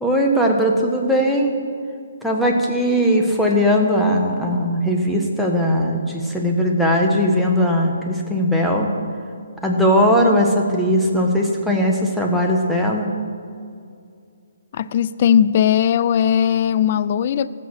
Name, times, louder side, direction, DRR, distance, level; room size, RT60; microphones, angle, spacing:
voice 1, 0.0-1.5 2.2-8.9 9.6-13.1, equal, ahead, -1 dB, 1.3 m, -19 dB
voice 2, 14.7-17.5, left 9 dB, 45° left, 16 dB, 0.4 m, -18 dB
15.5 x 6.5 x 6.4 m, 2.3 s
figure-of-eight pair, 140°, 0 cm